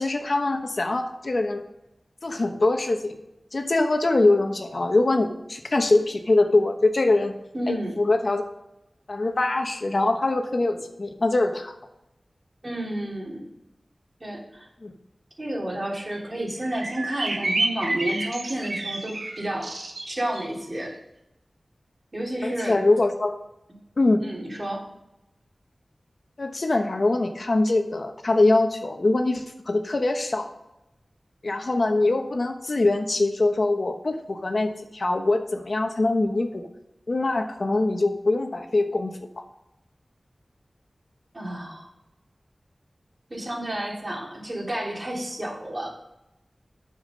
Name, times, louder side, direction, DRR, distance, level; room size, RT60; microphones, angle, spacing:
voice 1, 0.0-1.6 2.2-3.1 3.5-7.3 7.7-8.4 9.1-11.7 14.8-14.9 22.4-23.4 24.0-24.2 26.4-30.5 31.4-36.7 37.1-39.2, left 2 dB, 60° left, 5 dB, 1.1 m, -23 dB
voice 2, 7.5-8.0 12.6-13.5 14.2-14.7 15.4-19.8 20.1-20.9 22.1-22.8 24.2-24.9 41.3-41.9 43.3-45.9, right 1 dB, 40° right, -2 dB, 3.3 m, -31 dB
sound 1, 16.1-16.2 16.4-16.5 16.7-20.4, right 2 dB, 80° right, 1.5 m, -29 dB
9.0 x 7.2 x 5.2 m, 0.90 s
wide cardioid pair, 55°, 0 cm